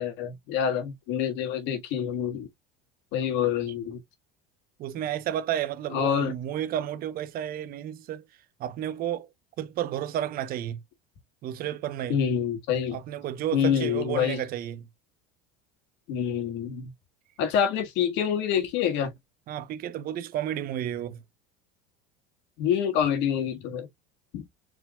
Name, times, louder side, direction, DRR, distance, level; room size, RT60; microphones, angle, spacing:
voice 1, 0.0-2.5 3.1-4.0 5.9-6.3 12.1-13.0 13.5-14.4 16.1-16.9 17.4-19.1 22.6-23.9 24.3-24.5, left 8 dB, 65° left, 1.6 m, -26 dB
voice 2, 4.8-8.2 8.6-9.3 9.6-10.8 11.4-12.2 12.9-14.9 19.5-21.2, right 11 dB, 45° right, 0.8 m, -32 dB
4.5 x 3.9 x 2.3 m
supercardioid pair, 130°, 21 cm